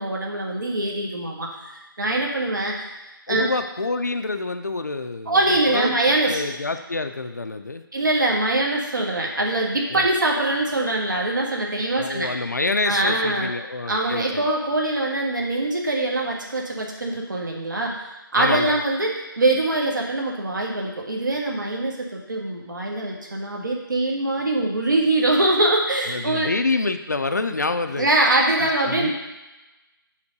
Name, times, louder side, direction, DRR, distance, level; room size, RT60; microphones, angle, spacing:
voice 1, 0.0-2.9 3.3-3.5 5.3-6.4 7.9-12.3 12.9-13.5 13.9-26.5 27.9-29.1, right 2 dB, 55° right, -1 dB, 1.5 m, -23 dB
voice 2, 3.3-5.9 6.2-7.8 9.9-10.1 11.9-14.5 18.3-18.8 26.1-28.1 28.6-29.1, left 3 dB, 50° left, 8 dB, 0.5 m, -27 dB
5.8 x 4.6 x 6.4 m, 1.0 s
figure-of-eight pair, 180°, 12 cm